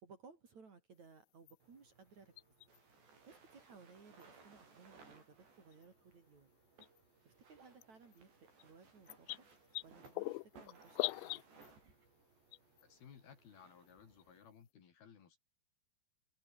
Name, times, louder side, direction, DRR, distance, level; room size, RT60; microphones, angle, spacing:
voice 1, 0.0-2.4 3.0-6.5 7.2-9.3 9.8-11.5, right 5 dB, 40° right, 4.3 m, -60 dB
sound 1, 1.5-1.6 2.4-2.8 4.2-4.3 5.7-5.9 6.8-7.0 7.8-7.9 8.1-8.2 8.6-8.7 9.1-11.7 12.5-12.8 13.9-14.0 14.2-14.3, left 23 dB, 85° left, 2.5 m, -41 dB
sound 2, 1.6-14.4, right 4 dB, 60° right, 10.0 m, -64 dB
voice 2, 12.8-15.4, left 7 dB, 55° left, 4.5 m, -59 dB
omnidirectional pair, 5.5 m